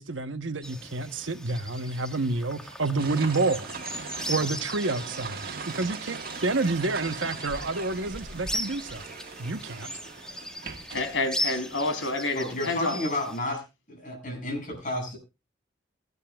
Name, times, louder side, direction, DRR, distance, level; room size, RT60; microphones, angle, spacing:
voice 1, 0.0-3.7 4.3-9.1 9.4-9.9, right 3 dB, 85° right, 1.1 m, -29 dB
sound 1, 0.6-13.4, left 1 dB, 5° left, 1.6 m, -38 dB
sound 2, 3.0-11.9, right 5 dB, 50° right, 1.6 m, -40 dB
voice 2, 10.9-13.0, left 2 dB, 90° left, 3.2 m, -28 dB
voice 3, 12.3-13.6 13.9-15.2, left 1 dB, 45° left, 6.9 m, -31 dB
24.0 x 9.7 x 2.4 m
head